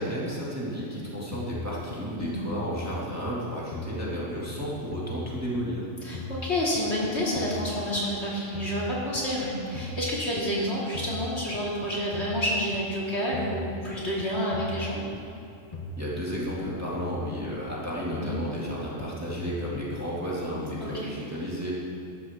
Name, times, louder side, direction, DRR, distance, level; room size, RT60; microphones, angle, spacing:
voice 1, 0.0-5.8 16.0-21.7, equal, 10° right, -7 dB, 2.2 m, -32 dB
sound 1, 1.3-3.4 3.7-5.9 6.1-8.2 8.5-10.6 10.9-12.9 13.3-15.4 15.7-17.8 18.1-20.2, left 2 dB, 35° left, 0.9 m, -39 dB
voice 2, 6.0-15.0 18.2-18.4 20.8-21.1, equal, 55° left, -6 dB, 2.8 m, -29 dB
12.5 x 12.5 x 3.6 m, 2.8 s
omnidirectional pair, 1.4 m